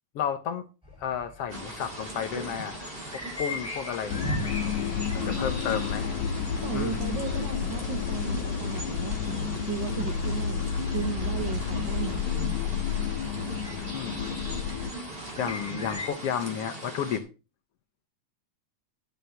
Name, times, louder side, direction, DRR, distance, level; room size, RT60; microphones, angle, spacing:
voice 1, 0.2-0.6 1.0-2.9 3.4-4.4 5.1-6.2 6.7-7.0 13.9-14.3 15.4-17.2, left 8 dB, 65° left, 9 dB, 1.6 m, -32 dB
sound 1, 0.8-16.1, left 2 dB, ahead, 5.2 m, -44 dB
sound 2, 1.5-17.2, right 1 dB, 20° right, 2.5 m, -39 dB
sound 3, 4.1-14.9, left 7 dB, 85° left, 2.3 m, -30 dB
voice 2, 5.1-5.5 6.6-12.6, right 8 dB, 75° right, 8 dB, 1.0 m, -36 dB
11.5 x 6.6 x 5.7 m, 0.33 s
omnidirectional pair, 3.4 m